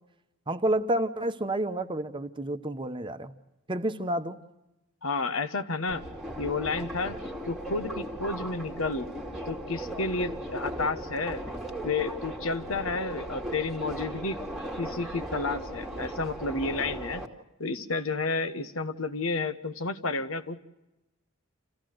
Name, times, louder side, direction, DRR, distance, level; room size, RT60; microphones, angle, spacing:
voice 1, 0.5-3.3 3.7-4.4, right 1 dB, 25° right, 9 dB, 0.9 m, -29 dB
voice 2, 5.0-6.0 6.4-7.2 7.5-9.1 9.5-11.4 11.8-14.4 14.8-17.2 17.6-20.6, left 3 dB, 80° left, 10 dB, 1.2 m, -31 dB
Subway metro underground, 5.9-17.3, right 1 dB, ahead, 1.8 m, -37 dB
27.5 x 15.5 x 7.7 m, 0.97 s
head